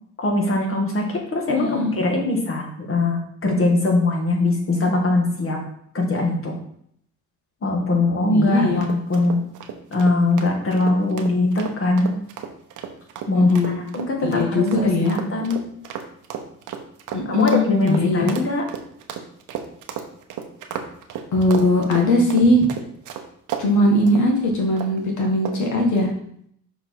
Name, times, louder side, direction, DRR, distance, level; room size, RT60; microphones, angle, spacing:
voice 1, 0.2-5.6 5.9-6.6 7.6-9.4 9.9-12.1 13.3-15.6 17.3-18.7, left 2 dB, 45° left, 1 dB, 2.1 m, -21 dB
voice 2, 1.5-1.9 8.3-8.9 13.3-13.8 14.2-15.2 17.1-18.4 21.3-22.6 23.6-26.1, left 1 dB, 70° left, 0 dB, 1.8 m, -20 dB
sound 1, 8.8-23.7 24.1-24.3 24.8-25.0 25.4-25.7, right 8 dB, 85° right, 0.9 m, -34 dB
6.4 x 4.8 x 4.7 m, 0.68 s
cardioid pair, 90°, 30 cm